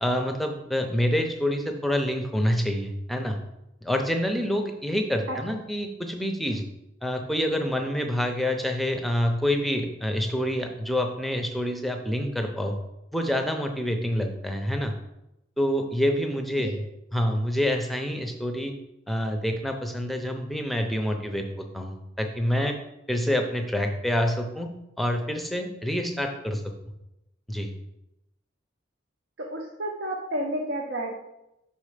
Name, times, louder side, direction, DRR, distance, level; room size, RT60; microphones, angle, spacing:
voice 1, 0.0-3.4 3.8-6.6 7.0-12.8 13.1-14.9 15.6-16.8 17.1-18.7 19.1-22.8 23.1-24.7 25.0-26.6 27.5-27.7, equal, ahead, 4 dB, 0.6 m, -27 dB
voice 2, 29.4-31.1, right 1 dB, 70° right, 0 dB, 0.8 m, -31 dB
5.8 x 4.3 x 5.0 m, 0.89 s
head